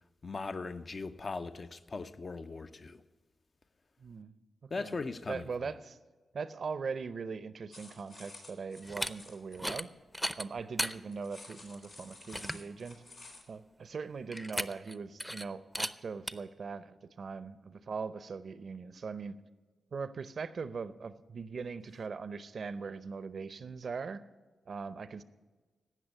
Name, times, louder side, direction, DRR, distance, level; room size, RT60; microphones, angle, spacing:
voice 1, 0.2-3.0 4.7-5.5, left 3 dB, 50° left, 0.7 m, -39 dB
voice 2, 4.0-4.3 4.8-5.0 5.3-6.0 6.3-9.9 10.4-13.0 13.5-19.4 19.9-24.2 24.7-25.2, right 5 dB, 65° right, 0.6 m, -40 dB
sound 1, 7.7-9.6 11.1-13.5, left 2 dB, 85° left, 2.6 m, -52 dB
sound 2, 8.8-9.1 9.5-9.9 10.1-10.9 11.5-11.6 12.0-12.1 12.3-12.7 14.3-14.9 15.2-15.4 15.7-15.9 16.3-16.4, equal, ahead, 0.6 m, -35 dB
16.5 x 6.2 x 8.3 m
supercardioid pair, 40°, 0 cm